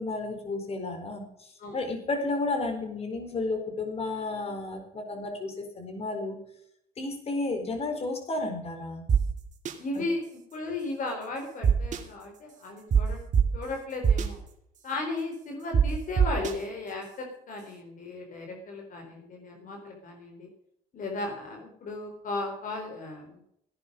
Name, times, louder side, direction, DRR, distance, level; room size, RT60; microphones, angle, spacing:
voice 1, 0.0-6.4 7.0-9.0, left 2 dB, 35° left, 4 dB, 4.5 m, -32 dB
sound 1, 9.1-9.2 9.6-9.7 11.6-12.0 12.9-13.0 13.3-13.4 14.0-14.3 15.7-15.8 16.2-16.5, right 7 dB, 45° right, 2.5 m, -20 dB
voice 2, 9.8-13.2 13.5-14.4 14.8-20.5 20.9-23.4, left 2 dB, 50° left, 3 dB, 4.0 m, -35 dB
16.5 x 11.0 x 5.3 m, 0.74 s
cardioid pair, 110°, 17 cm